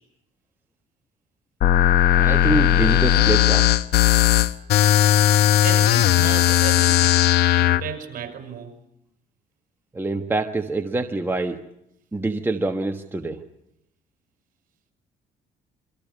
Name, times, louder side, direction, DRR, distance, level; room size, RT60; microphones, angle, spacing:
sound 1, 1.6-7.8, left 12 dB, 70° left, 0.9 m, -17 dB
voice 1, 2.1-3.7 9.9-11.6 12.1-13.4, right 3 dB, 15° right, 4 dB, 1.4 m, -25 dB
voice 2, 5.5-7.2 7.5-8.7, right 7 dB, 55° right, 6 dB, 5.8 m, -34 dB
27.5 x 24.5 x 5.3 m, 0.78 s
cardioid pair, 110°, 17 cm